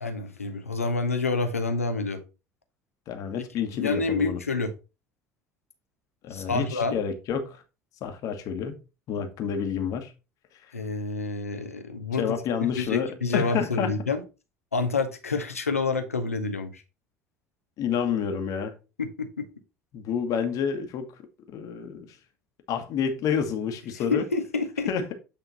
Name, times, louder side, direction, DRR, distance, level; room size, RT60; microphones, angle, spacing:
voice 1, 0.0-2.2 3.8-4.7 6.3-7.0 10.7-12.4 12.8-14.2 14.7-16.8 19.0-19.5 24.1-24.9, left 3 dB, 85° left, 0.9 m, -28 dB
voice 2, 3.1-4.4 6.2-7.6 8.0-8.8 9.1-10.1 10.6-10.7 12.2-13.9 17.8-18.8 19.9-21.1 21.5-22.2 22.7-24.2 24.9-25.0, left 7 dB, 50° left, 1.4 m, -29 dB
8.5 x 3.7 x 4.0 m
figure-of-eight pair, 60°, 7 cm